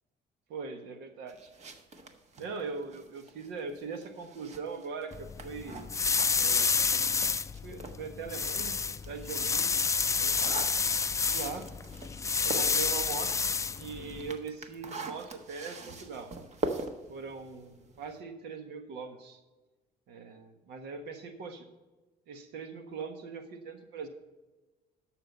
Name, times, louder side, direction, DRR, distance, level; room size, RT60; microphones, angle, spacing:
voice 1, 0.5-1.5 2.4-5.9 6.3-7.0 7.6-10.6 11.3-11.7 12.4-13.4 13.8-16.3 17.1-19.4 20.1-21.6 22.3-24.1, right 5 dB, 85° right, 7 dB, 1.4 m, -41 dB
sound 1, 1.3-8.1 8.5-18.2, right 3 dB, 40° right, 1.4 m, -43 dB
sound 2, 5.1-14.3, left 5 dB, 20° left, 0.4 m, -30 dB
12.0 x 6.8 x 5.4 m, 1.2 s
cardioid pair, 110°, 17 cm